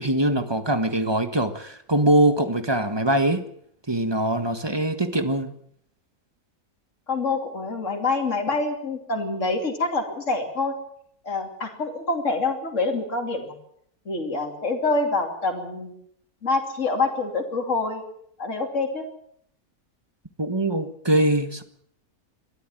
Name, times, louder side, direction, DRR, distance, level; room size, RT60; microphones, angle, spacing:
voice 1, 0.0-3.4 3.9-5.5 20.4-21.6, right 1 dB, 20° right, 1.4 m, -22 dB
voice 2, 7.1-10.7 11.2-13.6 14.0-15.9 16.4-18.0 18.4-19.0, left 3 dB, 55° left, 3.2 m, -26 dB
22.0 x 13.0 x 9.1 m
omnidirectional pair, 1.6 m